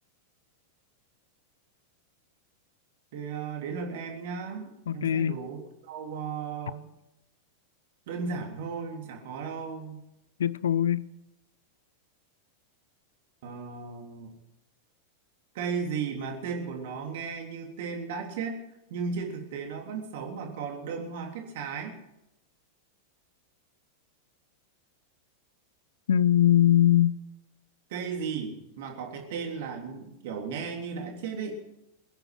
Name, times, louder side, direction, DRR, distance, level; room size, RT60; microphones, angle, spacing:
voice 1, 3.1-6.9 8.1-10.0 13.4-14.3 15.5-18.5 18.9-22.0 27.9-31.6, right 5 dB, 50° right, 3.4 m, -35 dB
voice 2, 4.9-5.4 10.4-11.0 26.1-27.2, left 11 dB, 65° left, 0.5 m, -22 dB
22.5 x 10.5 x 6.0 m
figure-of-eight pair, 90°, 0 cm